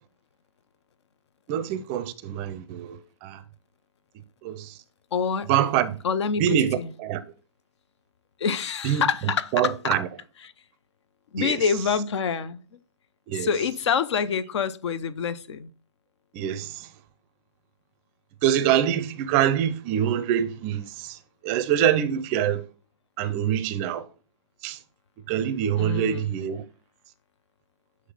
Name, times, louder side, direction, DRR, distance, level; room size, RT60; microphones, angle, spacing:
voice 1, 1.5-3.4 4.4-4.7 5.5-6.0 6.4-7.2 8.8-9.0 9.5-10.0 11.4-11.6 13.3-13.5 16.3-16.7 18.4-20.8 21.4-22.6 23.2-24.0 24.6-24.8 25.3-26.6, right 10 dB, 30° right, 0.5 m, -24 dB
voice 2, 5.1-5.5 6.0-6.9 8.4-10.0 10.4-10.5 11.3-12.6 13.3-15.7 25.8-26.4, left 6 dB, 65° left, 0.5 m, -26 dB
7.7 x 3.1 x 3.9 m
hypercardioid pair, 130°, 16 cm